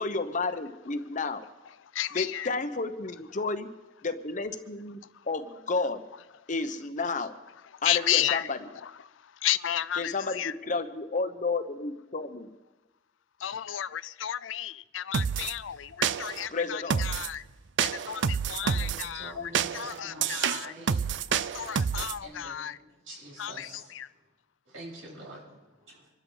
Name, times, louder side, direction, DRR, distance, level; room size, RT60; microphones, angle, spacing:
voice 1, 0.0-1.4 2.1-3.7 4.0-6.0 6.5-7.3 7.8-8.7 9.9-12.5 16.5-17.0, left 3 dB, 40° left, 0.9 m, -31 dB
voice 2, 1.9-2.5 7.7-8.5 8.8-10.5 13.4-17.4 17.8-20.7 21.3-22.8 23.4-24.1, left 12 dB, 80° left, 0.5 m, -33 dB
sound 1, 15.1-15.5 16.0-16.5 16.9-17.3 17.8-19.1 19.5-22.2, right 7 dB, 65° right, 0.4 m, -28 dB
voice 3, 18.6-21.1 22.1-24.0 24.7-26.1, right 1 dB, 85° right, 7.4 m, -46 dB
26.0 x 13.0 x 4.0 m
head